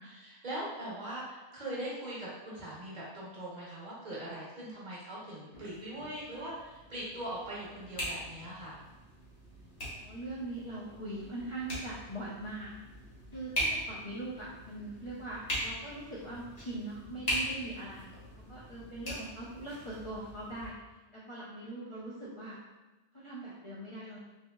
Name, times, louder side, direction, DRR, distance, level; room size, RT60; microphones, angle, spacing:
voice 1, 0.0-8.8, right 1 dB, 45° right, -6 dB, 0.8 m, -41 dB
sound 1, 5.5-20.7, equal, 80° left, 1.4 m, -41 dB
voice 2, 9.9-12.7 13.3-18.1 18.5-20.7 21.1-22.6 23.1-24.2, right 2 dB, 45° left, -7 dB, 0.4 m, -41 dB
3.0 x 2.8 x 2.2 m, 1.1 s
omnidirectional pair, 1.2 m